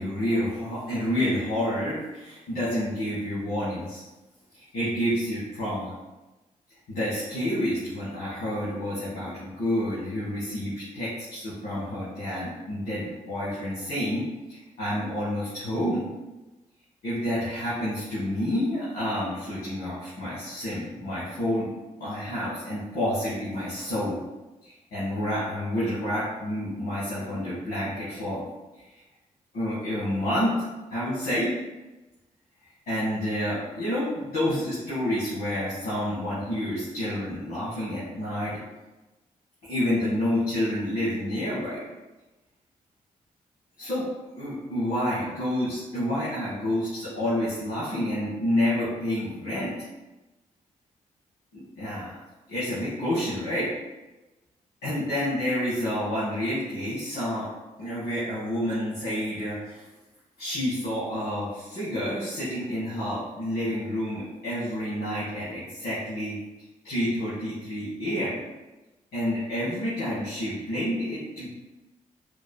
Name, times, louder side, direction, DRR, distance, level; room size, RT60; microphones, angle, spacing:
voice 1, 0.0-4.0 4.5-5.9 6.9-16.0 17.0-21.7 22.0-24.2 24.6-28.4 28.7-28.9 29.5-31.5 32.9-38.6 39.6-41.8 43.8-44.1 44.3-49.7 51.5-52.2 52.5-53.7 54.8-57.5 57.8-59.9 60.4-66.4 66.8-68.4 69.1-71.5, left 1 dB, 75° left, -11 dB, 1.4 m, -29 dB
4.7 x 3.0 x 2.2 m, 1.1 s
supercardioid pair, 45°, 16 cm